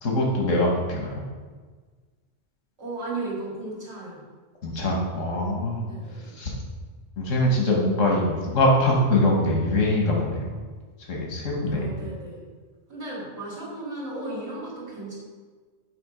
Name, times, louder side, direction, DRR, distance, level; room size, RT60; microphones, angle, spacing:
voice 1, 0.0-1.1 4.6-5.9 6.4-6.5 7.2-10.4 11.1-11.9, left 1 dB, 85° left, -1 dB, 1.5 m, -23 dB
voice 2, 2.8-4.2 5.8-6.4 11.6-12.4 12.9-15.2, right 2 dB, 65° right, -6 dB, 2.4 m, -35 dB
6.8 x 3.6 x 4.9 m, 1.4 s
omnidirectional pair, 1.3 m